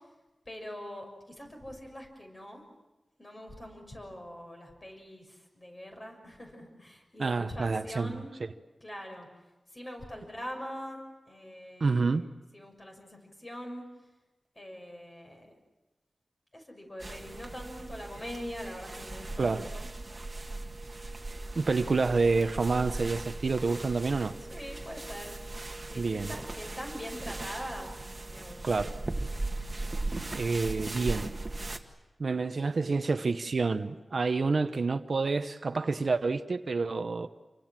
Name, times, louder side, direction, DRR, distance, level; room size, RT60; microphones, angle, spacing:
voice 1, 0.4-2.6 3.2-8.3 8.8-9.3 9.7-11.0 11.3-12.3 12.5-13.9 14.5-15.6 16.5-19.9 24.5-25.4 25.9-28.9, equal, 25° left, 2 dB, 6.6 m, -43 dB
voice 2, 7.2-8.2 11.8-12.3 19.4-19.7 21.5-24.3 26.0-26.3 28.6-28.9 30.3-31.3 32.2-37.3, right 4 dB, 55° right, 9 dB, 0.9 m, -28 dB
sound 1, 17.0-31.8, right 2 dB, 25° right, 1.9 m, -38 dB
28.5 x 24.5 x 7.5 m, 1.1 s
wide cardioid pair, 110°, 0 cm